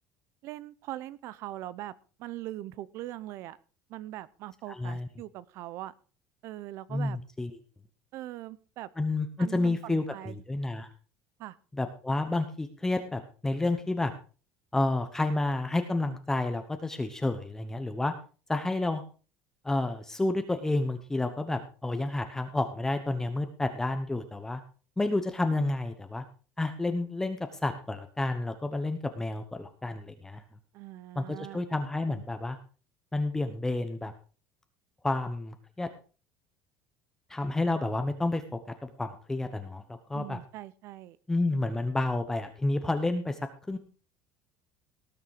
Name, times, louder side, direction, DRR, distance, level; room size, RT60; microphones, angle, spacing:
voice 1, 0.4-3.6 3.9-5.9 6.4-7.2 8.1-8.9 9.4-10.4 11.4-11.6 30.7-31.6 40.1-41.2, right 14 dB, 55° right, 19 dB, 0.7 m, -41 dB
voice 2, 4.7-5.1 6.9-7.5 9.0-10.9 11.7-14.1 14.7-18.1 18.5-19.0 19.6-24.6 25.0-26.2 26.6-30.4 31.1-32.6 33.1-34.1 35.0-35.9 37.3-38.4 38.8-40.4 41.3-43.4 43.7-43.8, left 2 dB, 10° left, 7 dB, 1.0 m, -30 dB
18.5 x 6.9 x 4.9 m, 0.37 s
cardioid pair, 155°, 6 cm